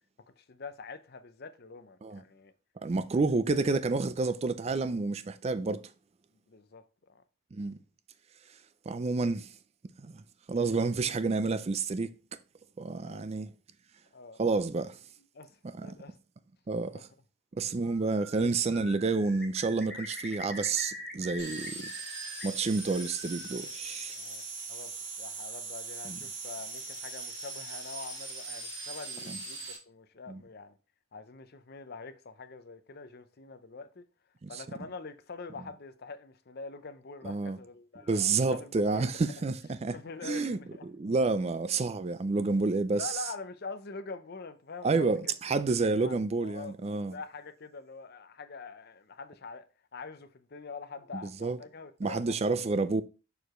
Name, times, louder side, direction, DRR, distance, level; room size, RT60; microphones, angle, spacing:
voice 1, 0.4-2.5 3.5-3.6 6.5-6.8 7.1-7.2 13.0-13.4 14.1-14.4 14.8-14.9 15.3-15.5 15.8-16.2 16.9-17.0 24.1-24.4 24.7-30.8 31.1-34.0 34.5-39.4 39.9-40.9 43.0-45.3 45.9-49.7 49.9-52.5, left 4 dB, 45° left, 0.6 m, -45 dB
voice 2, 2.8-5.9 7.5-7.8 8.9-9.5 10.0-10.2 10.5-12.1 12.8-13.5 14.4-15.0 15.8-16.0 16.7-17.1 17.6-21.9 22.4-24.2 26.0-26.2 29.3-29.4 30.3-30.4 34.4-34.6 37.2-37.6 38.1-40.0 40.2-40.6 40.9-43.1 44.8-47.1 51.1-51.6 52.0-53.0, right 3 dB, 30° right, 0.3 m, -29 dB
Bird, 17.9-18.5 18.7-22.4 22.8-23.6, left 1 dB, 5° left, 1.5 m, -44 dB
sound 1, 21.4-29.8, right 3 dB, 60° right, 2.2 m, -40 dB
6.8 x 4.7 x 3.0 m
head